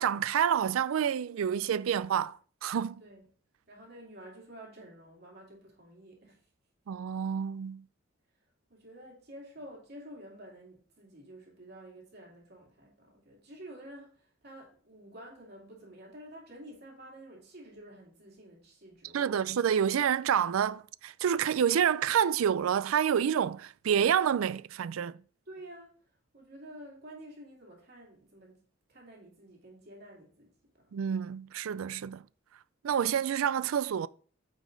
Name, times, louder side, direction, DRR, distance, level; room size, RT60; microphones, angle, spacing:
voice 1, 0.0-3.0 6.9-7.8 19.1-25.2 30.9-32.2 32.8-34.1, right 8 dB, 85° right, 0.4 m, -28 dB
voice 2, 3.7-6.4 8.7-19.5 25.5-25.9 26.3-28.5 28.9-30.9, right 1 dB, 50° right, 2.7 m, -50 dB
9.2 x 5.1 x 3.9 m
head